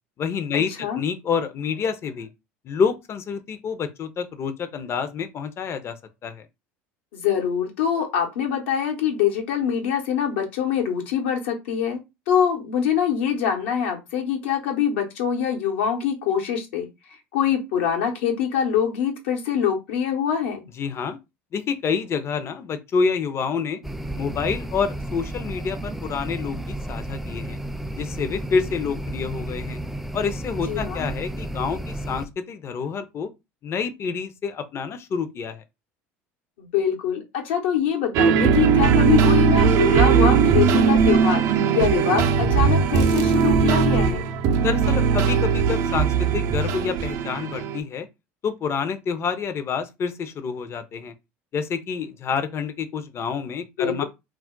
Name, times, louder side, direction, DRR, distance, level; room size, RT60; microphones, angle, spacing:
voice 1, 0.2-2.3 2.6-6.0 6.2-6.5 20.8-21.2 21.5-23.8 24.1-27.6 27.9-29.8 30.1-33.3 33.6-35.6 44.6-48.1 48.4-51.1 51.5-54.0, left 6 dB, 40° left, 0.6 m, -28 dB
voice 2, 7.1-12.0 12.3-16.9 17.3-20.6 30.7-31.1 36.6-41.4 41.7-44.3 53.8-54.0, left 8 dB, 80° left, 1.0 m, -24 dB
sound 1, 23.8-32.3, right 1 dB, 5° right, 0.4 m, -32 dB
sound 2, 38.1-47.8, right 6 dB, 60° right, 0.5 m, -19 dB
2.4 x 2.1 x 3.7 m
hypercardioid pair, 80°, 7 cm